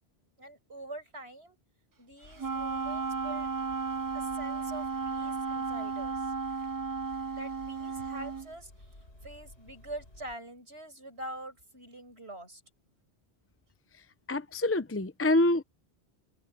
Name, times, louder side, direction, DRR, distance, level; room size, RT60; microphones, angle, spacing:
voice 1, 0.4-1.6 2.0-3.5 4.1-6.3 7.3-8.7 9.2-12.6, right 1 dB, 80° right, 7.4 m, -44 dB
sound 1, 2.2-10.4, left 1 dB, 90° left, 6.8 m, -54 dB
Wind instrument woodwind instrument, 2.4-8.5, right 4 dB, 30° right, 0.4 m, -34 dB
voice 2, 14.3-15.6, left 1 dB, 15° left, 0.6 m, -26 dB
omnidirectional pair, 1.1 m